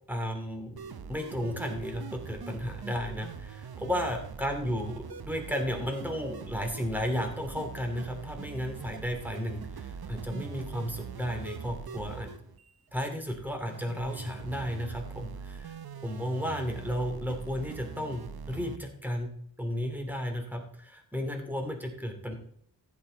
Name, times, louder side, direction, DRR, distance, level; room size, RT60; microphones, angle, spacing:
voice 1, 0.1-12.3 12.9-15.8 16.0-19.3 19.6-22.3, equal, 5° right, 3 dB, 2.7 m, -33 dB
sound 1, 0.8-18.8, right 6 dB, 65° right, 0.8 m, -43 dB
15.0 x 8.4 x 4.0 m, 0.65 s
wide cardioid pair, 85°, 40 cm